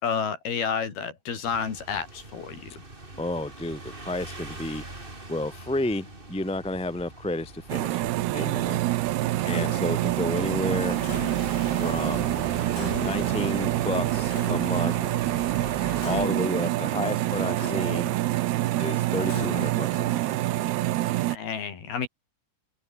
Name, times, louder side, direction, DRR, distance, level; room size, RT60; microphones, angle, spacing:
voice 1, 0.0-2.7 21.3-22.1, left 6 dB, 50° left, 5.4 m, -30 dB
sound 1, 1.4-16.3, right 2 dB, 15° right, 2.7 m, -40 dB
voice 2, 3.2-4.8 5.3-8.1 8.3-8.8 9.4-11.1 11.8-12.3 13.0-15.0 16.0-18.1 18.8-20.3, left 2 dB, 5° left, 0.8 m, -31 dB
sound 2, 7.7-21.4, right 16 dB, 80° right, 2.4 m, -26 dB
Clock, 9.5-20.9, left 5 dB, 90° left, 10.0 m, -42 dB
omnidirectional pair, 5.9 m